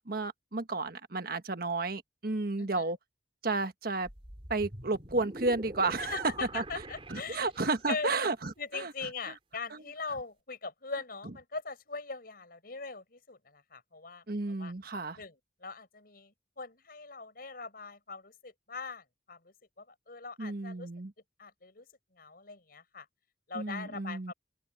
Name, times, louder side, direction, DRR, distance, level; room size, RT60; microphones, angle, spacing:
voice 1, 0.0-3.0 3.4-4.1 4.5-6.6 7.1-8.9 9.7-9.8 14.3-15.2 20.4-21.1 23.5-24.3, right 3 dB, 55° right, 1.4 m, -32 dB
sound 1, 4.0-8.0, right 1 dB, 30° right, 3.5 m, -45 dB
voice 2, 6.0-7.5 7.9-8.1 8.6-14.2 14.6-14.7 15.2-15.4 15.6-20.9 21.4-21.9 22.1-23.1 23.5-24.3, left 4 dB, 55° left, 5.4 m, -41 dB
open air
head